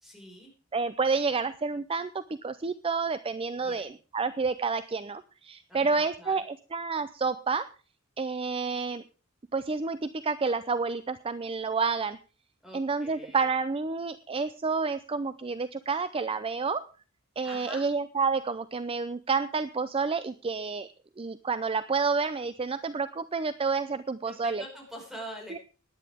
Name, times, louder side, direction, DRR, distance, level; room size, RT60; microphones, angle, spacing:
voice 1, 0.0-0.5 3.6-3.9 5.7-6.3 12.6-13.5 17.4-17.8 24.2-25.6, equal, ahead, 0 dB, 5.3 m, -44 dB
voice 2, 0.7-7.7 8.2-9.0 9.5-12.2 12.7-16.9 17.4-20.9 21.2-24.6 25.5-25.6, right 4 dB, 25° right, 13 dB, 0.5 m, -29 dB
17.5 x 10.5 x 3.6 m, 0.36 s
head